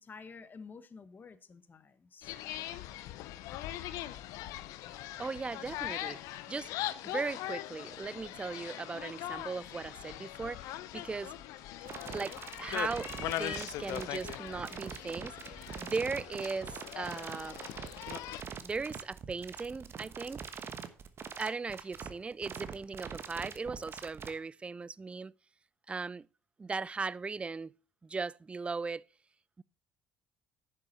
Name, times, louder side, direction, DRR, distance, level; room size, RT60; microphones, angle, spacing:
voice 1, 0.0-2.3, left 5 dB, 30° left, 1.0 m, -51 dB
sound 1, 2.2-18.4, left 14 dB, 65° left, 0.7 m, -41 dB
voice 2, 4.9-6.7 7.0-11.3 12.1-17.6 18.6-20.7 21.4-25.3 25.9-26.3 26.6-27.7 28.0-29.0 29.6-29.7, right 4 dB, 20° right, 0.3 m, -38 dB
sound 2, 11.9-24.3, right 6 dB, 40° right, 1.2 m, -43 dB
10.5 x 6.8 x 4.1 m
hypercardioid pair, 60°, 6 cm